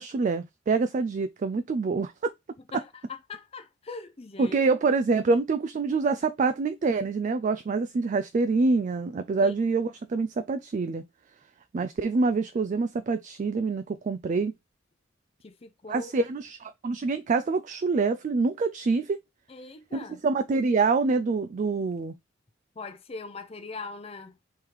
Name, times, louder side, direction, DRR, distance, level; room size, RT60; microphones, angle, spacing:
voice 1, 0.0-2.3 4.4-11.0 11.7-14.5 15.9-19.2 19.9-22.1, right 4 dB, 40° right, 0.3 m, -26 dB
voice 2, 2.7-4.6 9.4-9.5 15.4-16.1 19.5-20.2 22.8-24.4, left 4 dB, 30° left, 0.6 m, -41 dB
3.6 x 3.2 x 4.6 m
head